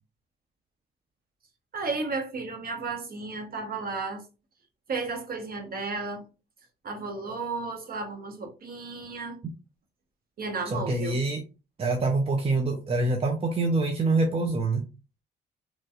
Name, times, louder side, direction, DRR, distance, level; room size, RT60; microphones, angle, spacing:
voice 1, 1.7-4.2 4.9-6.3 6.8-9.4 10.4-11.2, right 3 dB, 50° right, 1.0 m, -33 dB
voice 2, 10.7-11.4 11.8-14.9, right 2 dB, 30° right, 0.6 m, -25 dB
2.9 x 2.7 x 2.3 m
cardioid pair, 90°, 20 cm